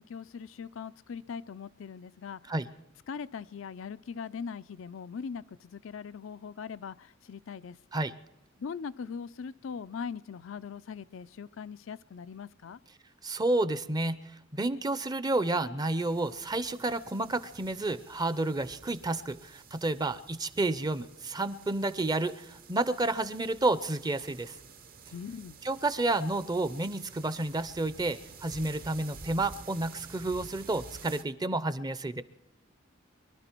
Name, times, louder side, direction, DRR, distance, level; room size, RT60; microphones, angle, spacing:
voice 1, 0.0-2.5 3.1-7.8 8.6-12.8 25.1-25.6, left 6 dB, 70° left, 0.4 m, -41 dB
voice 2, 13.2-14.2 14.5-24.5 25.6-32.2, right 2 dB, 20° right, 0.6 m, -30 dB
sound 1, 15.8-31.2, right 5 dB, 45° right, 0.9 m, -51 dB
23.5 x 12.0 x 4.5 m
head